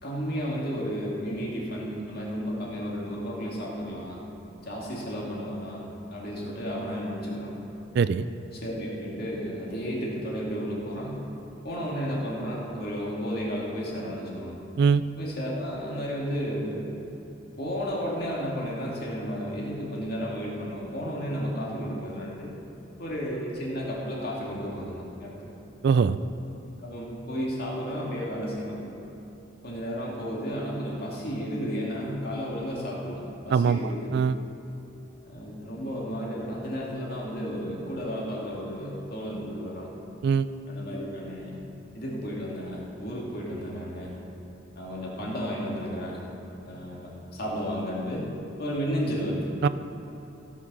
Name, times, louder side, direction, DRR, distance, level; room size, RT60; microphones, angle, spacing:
voice 1, 0.0-4.2 4.6-7.5 8.5-11.2 11.6-14.6 15.2-16.9 17.6-22.5 23.0-25.5 26.8-28.7 29.6-34.1 35.2-39.9 40.7-41.6 41.9-44.1 44.8-46.2 46.6-48.3 48.6-49.5, equal, 50° left, -4 dB, 2.4 m, -33 dB
voice 2, 8.0-8.3 14.8-15.0 25.8-26.2 33.5-33.8 34.1-34.3 40.2-40.5 49.6-49.7, right 6 dB, 60° right, 14 dB, 0.3 m, -21 dB
16.0 x 6.1 x 6.2 m, 2.9 s
head